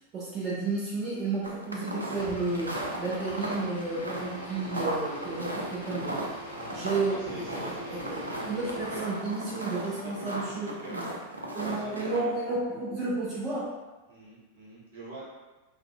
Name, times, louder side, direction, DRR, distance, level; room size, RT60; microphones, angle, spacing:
voice 1, 0.1-6.2 6.7-8.2 8.5-11.1 11.5-13.7, right 3 dB, 30° right, -8 dB, 0.5 m, -32 dB
sound 1, 1.4-12.2, right 1 dB, 80° right, 0.3 m, -36 dB
sound 2, 2.2-9.2, equal, 70° left, 0.6 m, -44 dB
voice 2, 6.5-9.0 9.7-11.0 11.6-12.1 14.1-15.2, right 1 dB, 60° right, -7 dB, 0.9 m, -45 dB
2.5 x 2.1 x 2.4 m, 1.2 s
figure-of-eight pair, 90°, 0 cm